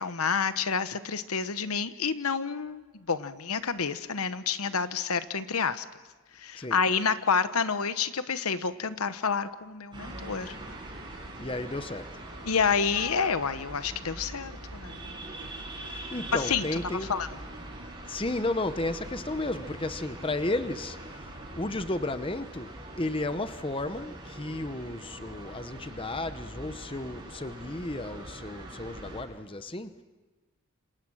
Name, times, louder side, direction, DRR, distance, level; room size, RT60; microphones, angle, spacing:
voice 1, 0.0-5.8 6.4-10.6 12.4-15.1 16.5-16.6 17.1-17.3, left 5 dB, 85° left, 1.1 m, -29 dB
sound 1, 9.9-29.2, right 1 dB, 20° right, 7.8 m, -42 dB
voice 2, 11.4-12.2 15.9-17.2 18.0-29.9, left 2 dB, 25° left, 0.9 m, -33 dB
28.5 x 27.0 x 6.3 m
head